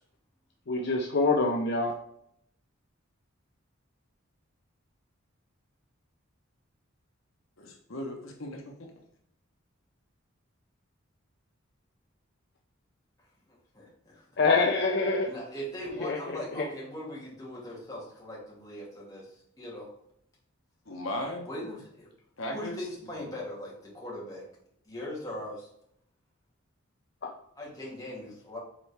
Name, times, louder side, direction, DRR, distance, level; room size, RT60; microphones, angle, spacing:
voice 1, 0.7-1.9 14.4-15.3 16.0-16.7 27.2-27.3, left 3 dB, 55° left, 1 dB, 0.6 m, -26 dB
voice 2, 7.6-8.9 20.9-21.5 22.4-22.9, left 1 dB, 75° left, 2 dB, 1.1 m, -37 dB
voice 3, 13.7-14.2 15.3-19.3 19.6-19.9 21.5-22.1 22.5-24.4 24.9-25.7 27.6-28.6, left 1 dB, 15° left, -5 dB, 2.2 m, -40 dB
7.3 x 4.5 x 3.4 m, 0.72 s
head